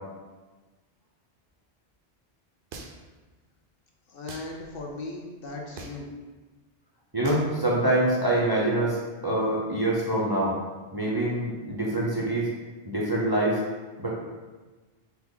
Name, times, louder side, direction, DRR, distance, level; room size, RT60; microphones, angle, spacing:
sound 1, 2.7-3.2 4.3-4.5 5.8-6.1 7.2-7.5, right 4 dB, 65° right, 0.7 m, -41 dB
voice 1, 4.1-6.1, left 2 dB, 65° left, 0 dB, 0.8 m, -37 dB
voice 2, 7.1-9.0 9.2-10.5 10.9-12.5 12.9-13.6 14.0-14.1, right 1 dB, 30° right, -5 dB, 0.5 m, -25 dB
3.8 x 2.9 x 3.7 m, 1.3 s
omnidirectional pair, 1.0 m